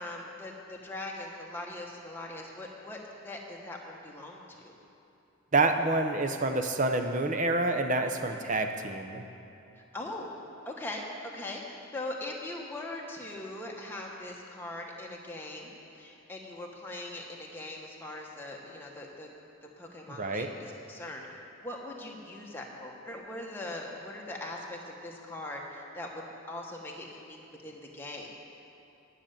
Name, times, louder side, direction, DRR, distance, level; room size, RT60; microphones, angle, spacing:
voice 1, 0.0-4.7 8.2-8.4 9.8-10.3 10.6-11.0 11.3-19.3 19.6-28.3, left 1 dB, 10° left, -1 dB, 1.1 m, -41 dB
voice 2, 5.5-9.2 20.1-20.5, right 2 dB, 35° right, 6 dB, 0.6 m, -28 dB
9.8 x 6.6 x 8.8 m, 2.8 s
head